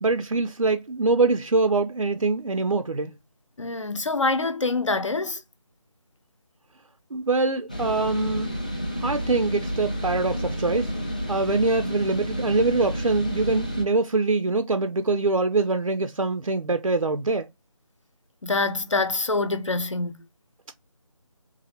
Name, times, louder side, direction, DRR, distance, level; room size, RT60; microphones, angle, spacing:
voice 1, 0.0-3.1 7.1-8.5 9.0-10.9 11.3-17.5, right 3 dB, 85° right, 0.5 m, -24 dB
voice 2, 3.6-5.4 18.4-20.2, left 3 dB, 65° left, 0.8 m, -25 dB
sound 1, 7.7-13.8, equal, 15° left, 0.4 m, -30 dB
4.0 x 2.6 x 2.7 m
figure-of-eight pair, 160°, 17 cm